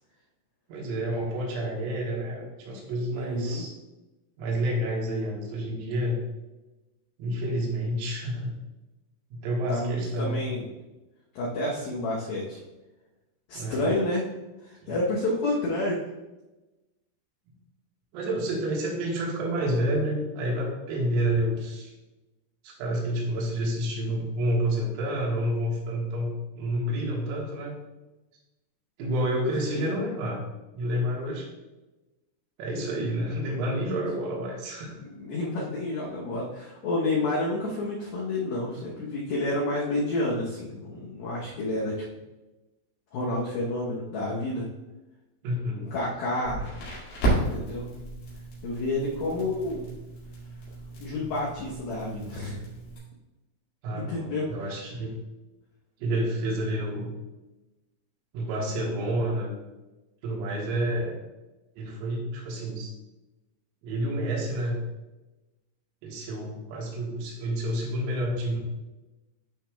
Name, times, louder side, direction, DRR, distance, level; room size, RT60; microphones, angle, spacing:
voice 1, 0.7-3.7 4.4-6.2 7.2-8.6 9.3-10.4 13.5-13.9 14.8-15.0 18.1-21.9 22.6-27.8 29.0-30.5 30.7-31.5 32.6-34.9 45.4-45.9 46.6-46.7 53.8-55.2 56.0-57.2 58.3-59.5 60.2-61.2 61.8-62.9 63.8-64.8 66.0-68.6, right 1 dB, 85° right, -2 dB, 4.1 m, -29 dB
voice 2, 3.1-3.6 9.7-10.7 11.3-12.6 13.5-14.2 14.6-16.0 29.7-29.9 35.0-41.9 43.1-44.7 45.9-46.7 47.5-47.9 48.6-49.9 51.0-52.7 53.9-54.5, left 2 dB, 90° left, -4 dB, 2.1 m, -29 dB
Crackle, 46.4-53.0, right 2 dB, 55° left, 3.4 m, -33 dB
12.5 x 4.9 x 2.3 m, 1.1 s
omnidirectional pair, 5.9 m